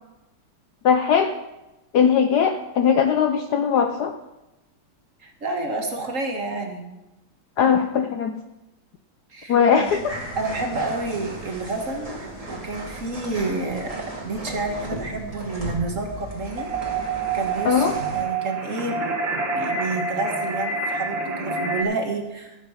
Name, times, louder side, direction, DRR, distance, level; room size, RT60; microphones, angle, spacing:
voice 1, 0.8-1.3 1.9-4.2 7.6-8.3 9.5-10.1 17.6-18.0, left 7 dB, 65° left, 7 dB, 1.0 m, -19 dB
voice 2, 5.2-6.9 9.3-10.0 10.4-16.7 17.1-17.9 18.1-19.0 19.3-22.6, right 3 dB, 40° right, 3 dB, 1.8 m, -29 dB
sound 1, 9.8-18.2, right 1 dB, 15° right, 2.1 m, -36 dB
sound 2, 16.6-21.8, right 4 dB, 65° right, 2.3 m, -27 dB
13.5 x 8.5 x 5.7 m, 1.0 s
omnidirectional pair, 2.3 m